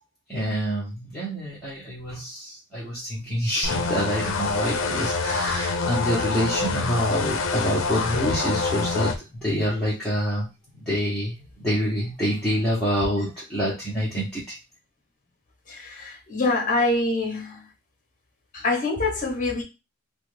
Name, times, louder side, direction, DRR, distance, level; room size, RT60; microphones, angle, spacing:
voice 1, 0.3-9.1 9.4-10.5 10.8-14.6, equal, 5° left, 0.9 m, -27 dB
sound 1, 3.6-9.2, left 4 dB, 60° left, 0.5 m, -26 dB
voice 2, 15.7-17.7 18.5-19.6, left 2 dB, 35° left, 0.9 m, -25 dB
3.1 x 2.2 x 3.2 m
head